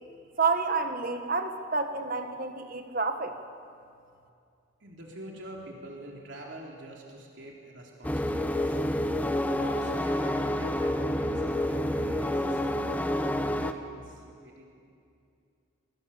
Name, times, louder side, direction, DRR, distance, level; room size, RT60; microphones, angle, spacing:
voice 1, 0.4-3.3, right 4 dB, 45° right, 7 dB, 1.6 m, -29 dB
voice 2, 4.8-8.8 9.5-14.6, right 1 dB, 65° right, -1 dB, 3.3 m, -46 dB
sound 1, 8.0-13.7, left 1 dB, 10° left, 0.9 m, -28 dB
26.0 x 25.0 x 7.1 m, 2.5 s
head